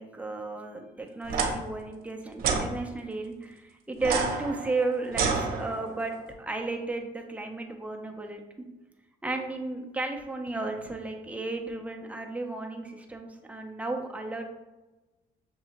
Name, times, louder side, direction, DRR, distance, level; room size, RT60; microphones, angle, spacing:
voice 1, 0.0-8.4 9.2-14.5, right 3 dB, 10° right, 2 dB, 0.6 m, -34 dB
Electric switch click clicking, 1.3-1.5 2.4-2.7 4.0-6.0, right 5 dB, 60° right, 0.9 m, -28 dB
6.9 x 2.7 x 2.9 m, 1.1 s
cardioid pair, 110°, 17 cm